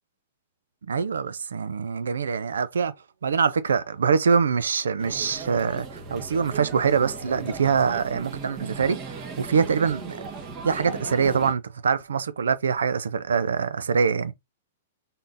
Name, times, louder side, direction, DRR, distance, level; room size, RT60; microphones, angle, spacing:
voice 1, 0.9-2.9 3.2-10.2 10.6-14.3, right 6 dB, 75° right, 0.4 m, -24 dB
sound 1, 5.0-11.5, right 4 dB, 35° right, 1.4 m, -37 dB
3.7 x 3.7 x 2.6 m
hypercardioid pair, 110°, 0 cm